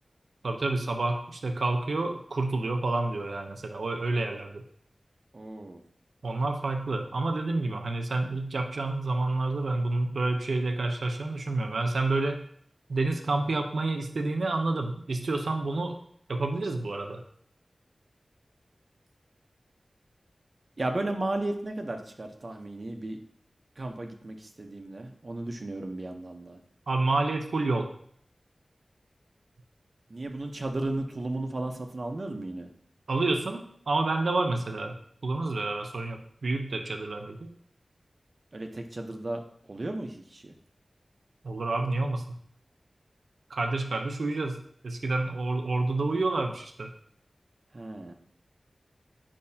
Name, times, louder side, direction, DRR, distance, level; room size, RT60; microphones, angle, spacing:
voice 1, 0.4-4.6 6.2-12.4 12.9-16.0 16.3-17.2 26.9-27.9 33.1-35.0 35.2-37.4 41.4-42.2 43.5-46.9, right 2 dB, 85° right, 4 dB, 0.8 m, -29 dB
voice 2, 5.3-5.8 20.8-23.2 23.8-26.6 30.1-32.7 38.5-39.4 39.7-40.5 47.7-48.1, right 2 dB, 50° right, 4 dB, 0.9 m, -34 dB
8.7 x 5.3 x 2.8 m, 0.64 s
wide cardioid pair, 75°, 0 cm